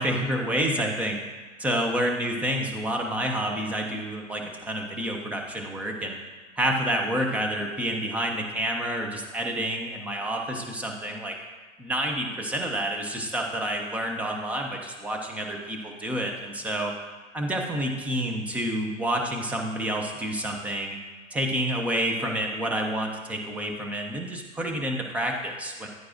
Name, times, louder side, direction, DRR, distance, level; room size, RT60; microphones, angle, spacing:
voice 1, 0.0-1.2 1.6-6.2 6.6-11.4 11.8-16.9 17.3-21.0 21.3-25.9, right 1 dB, 5° right, 2 dB, 0.4 m, -29 dB
9.4 x 9.3 x 2.5 m, 1.4 s
hypercardioid pair, 120°, 40 cm